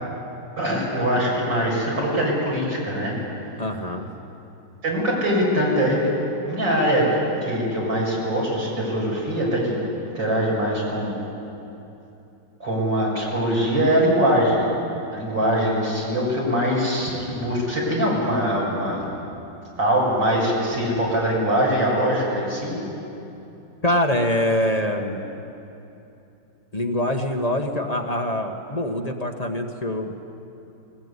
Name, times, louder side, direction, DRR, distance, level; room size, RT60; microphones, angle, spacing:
voice 1, 0.6-3.2 4.8-6.1 6.4-7.1 7.4-9.8 10.1-11.1 12.6-14.7 15.1-19.1 19.8-22.8, equal, 65° right, -4 dB, 6.9 m, -22 dB
voice 2, 3.6-4.1 23.8-25.2 26.7-30.2, left 1 dB, 25° left, 2 dB, 1.1 m, -24 dB
20.0 x 19.5 x 9.7 m, 2.9 s
omnidirectional pair, 2.1 m